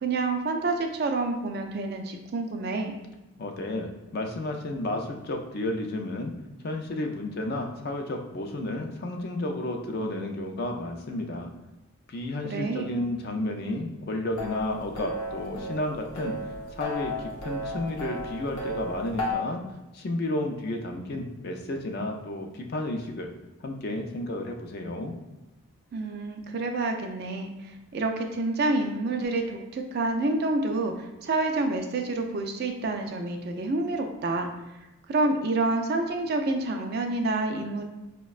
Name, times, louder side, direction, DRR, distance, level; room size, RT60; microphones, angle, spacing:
voice 1, 0.0-3.0 12.4-13.0 25.9-27.5 27.9-34.5 35.1-37.8, right 2 dB, 45° right, 4 dB, 0.3 m, -28 dB
voice 2, 3.4-6.3 6.6-11.5 12.1-16.3 16.7-19.6 19.9-23.3 23.6-25.2, left 1 dB, 45° left, 3 dB, 0.4 m, -32 dB
sound 1, 14.4-19.3, left 1 dB, 80° left, 0.7 m, -34 dB
5.0 x 2.1 x 2.3 m, 1.0 s
head